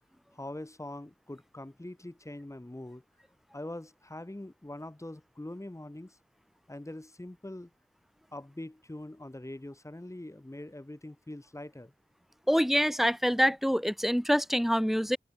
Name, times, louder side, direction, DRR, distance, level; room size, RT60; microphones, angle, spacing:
voice 1, 0.3-3.0 3.5-6.2 6.7-7.7 8.3-11.9, left 1 dB, 15° left, 2.0 m, -43 dB
voice 2, 12.5-15.2, equal, ahead, 0.6 m, -26 dB
wide cardioid pair, 50°, 18 cm